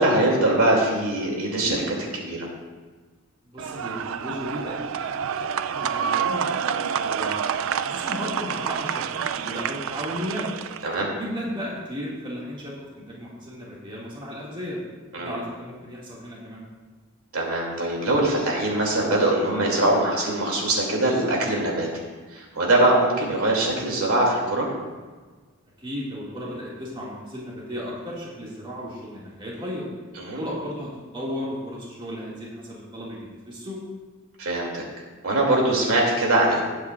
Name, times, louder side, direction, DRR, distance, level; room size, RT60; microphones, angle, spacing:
voice 1, 0.0-2.5 10.8-11.1 15.1-15.4 17.3-21.9 22.3-24.7 30.2-30.4 34.4-34.8 35.2-36.6, right 1 dB, 90° right, -2 dB, 2.6 m, -22 dB
voice 2, 3.5-7.4 7.8-10.5 11.2-14.8 15.2-16.6 25.8-29.9 30.4-33.8, equal, 25° right, -5 dB, 2.1 m, -35 dB
sound 1, 3.6-11.0, right 7 dB, 65° right, 0.3 m, -28 dB
19.0 x 7.8 x 2.5 m, 1.4 s
head